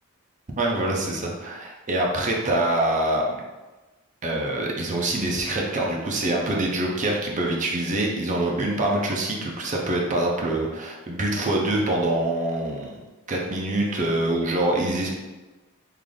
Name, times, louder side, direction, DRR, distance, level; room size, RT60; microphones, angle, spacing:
voice 1, 0.6-3.2 4.2-13.0 13.3-15.1, right 1 dB, 35° right, -1 dB, 0.5 m, -25 dB
3.8 x 2.4 x 3.3 m, 1.1 s
head